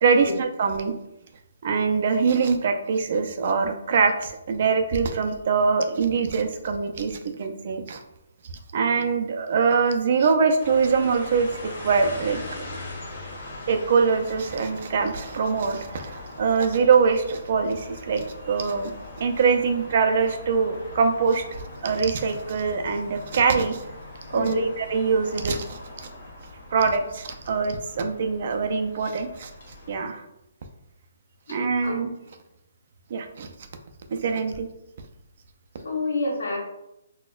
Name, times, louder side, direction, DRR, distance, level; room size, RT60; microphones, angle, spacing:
voice 1, 0.0-0.9 1.6-8.0 8.7-11.5 11.8-12.4 13.7-18.9 19.2-23.8 24.3-25.8 26.7-29.5 29.9-30.2 31.5-32.1 33.1-33.5 34.1-34.7, right 5 dB, 40° right, 6 dB, 0.3 m, -23 dB
sound 1, 10.6-30.0, left 2 dB, 40° left, 0.9 m, -41 dB
voice 2, 24.3-24.7 31.5-31.6 31.8-32.0 35.8-36.6, left 3 dB, 85° left, -1 dB, 1.1 m, -28 dB
4.1 x 2.1 x 2.3 m, 0.85 s
hypercardioid pair, 170°, 0 cm